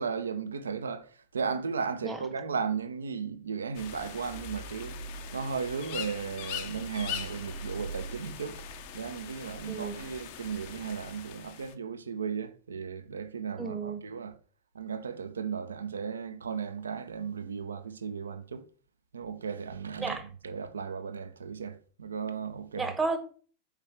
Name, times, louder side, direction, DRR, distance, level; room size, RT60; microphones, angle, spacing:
voice 1, 0.0-5.0 5.3-8.6 8.9-14.3 14.7-18.7 19.1-20.2 20.4-22.9, right 6 dB, 70° right, 0.5 m, -35 dB
sound 1, 3.7-11.7, left 4 dB, 45° left, 0.5 m, -41 dB
voice 2, 9.7-10.0 13.6-14.0 20.0-20.2 22.8-23.2, right 3 dB, 10° right, 0.7 m, -32 dB
4.5 x 3.3 x 3.2 m
figure-of-eight pair, 90°, 0 cm